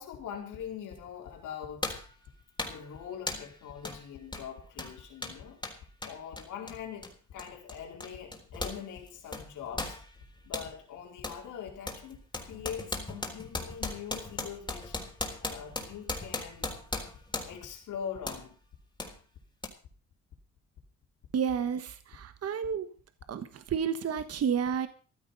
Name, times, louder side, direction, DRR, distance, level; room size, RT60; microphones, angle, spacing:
voice 1, 0.0-2.0 2.6-5.6 6.0-10.0 10.4-15.0 15.4-16.8 17.5-18.6, left 8 dB, 85° left, 0 dB, 4.3 m, -42 dB
sound 1, 1.0-1.1 1.8-2.1 2.6-2.9 3.3-3.5 3.8-4.0 4.3-8.8 9.1-10.7 11.2-11.4 11.9-17.7 18.3-18.5 19.0-19.1 19.6-19.7, left 2 dB, 15° left, 3.9 m, -37 dB
voice 2, 21.3-22.9 23.3-24.9, right 7 dB, 55° right, 10 dB, 1.3 m, -31 dB
15.0 x 12.5 x 5.4 m, 0.39 s
cardioid pair, 90°, 30 cm